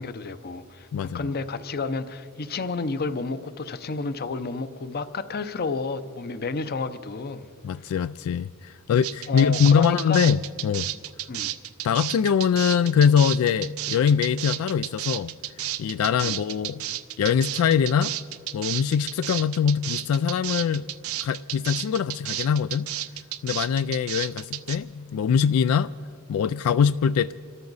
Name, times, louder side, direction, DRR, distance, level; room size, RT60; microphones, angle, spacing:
voice 1, 0.0-7.5 7.8-7.9 9.3-10.2 11.3-11.5 16.2-16.4, left 4 dB, 45° left, 12 dB, 0.7 m, -31 dB
voice 2, 0.9-1.3 7.6-10.9 11.8-15.3 15.8-16.8 17.2-18.2 18.5-20.9 21.2-22.9 23.4-25.9 26.3-27.3, left 7 dB, 85° left, 15 dB, 0.3 m, -23 dB
sound 1, 9.0-24.8, right 13 dB, 90° right, 0.6 m, -32 dB
26.5 x 13.5 x 4.0 m, 2.2 s
head